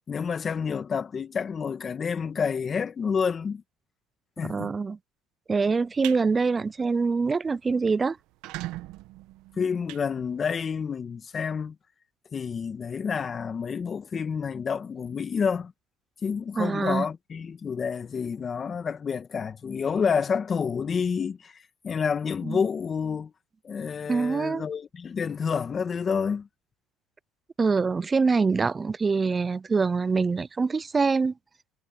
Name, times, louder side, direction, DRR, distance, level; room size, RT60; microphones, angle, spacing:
voice 1, 0.1-3.6 4.4-4.7 9.6-11.7 12.3-15.7 16.2-23.3 23.6-26.5, left 6 dB, 30° left, 1.7 m, -29 dB
voice 2, 4.5-5.0 5.5-8.2 16.6-17.1 22.4-22.6 24.1-24.6 27.6-31.3, right 4 dB, 20° right, 0.4 m, -24 dB
sound 1, 5.7-6.2 6.7-6.9 7.3-7.4 7.6-7.7 8.2-10.8, right 17 dB, 70° right, 1.1 m, -39 dB
supercardioid pair, 105°, 0 cm